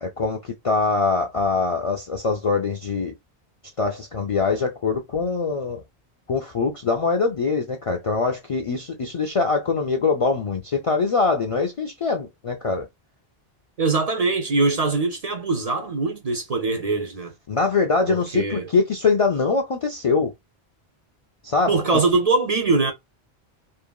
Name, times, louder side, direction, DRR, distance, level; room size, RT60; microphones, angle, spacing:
voice 1, 0.0-3.1 3.8-5.8 6.3-12.9 17.5-20.3 21.4-21.7, left 4 dB, 50° left, 0.4 m, -23 dB
voice 2, 13.8-17.3 18.1-18.7 21.7-22.9, right 3 dB, 45° right, 0.6 m, -22 dB
2.8 x 2.6 x 2.2 m
omnidirectional pair, 1.1 m